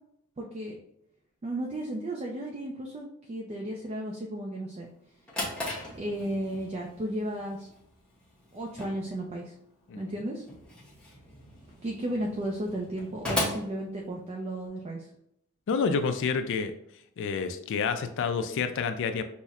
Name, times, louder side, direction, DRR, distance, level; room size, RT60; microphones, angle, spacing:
voice 1, 0.4-0.8 1.4-4.9 5.9-7.7 8.5-9.5 10.0-10.4 11.8-15.1, right 1 dB, 30° right, -1 dB, 0.4 m, -34 dB
Drawer open or close, 4.9-14.7, left 1 dB, 5° left, 0.8 m, -38 dB
voice 2, 15.7-16.7 17.2-19.2, left 5 dB, 60° left, 8 dB, 0.3 m, -29 dB
5.5 x 2.1 x 2.4 m, 0.76 s
head